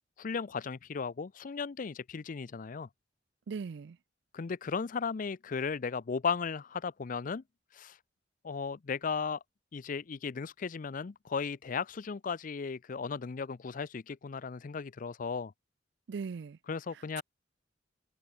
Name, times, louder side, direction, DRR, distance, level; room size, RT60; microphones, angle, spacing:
voice 1, 0.2-2.9 4.3-7.4 7.7-8.0 8.4-9.4 9.7-15.5 16.7-17.2, left 5 dB, 50° left, 0.5 m, -36 dB
voice 2, 3.5-4.0 16.1-16.6, right 5 dB, 65° right, 0.4 m, -38 dB
head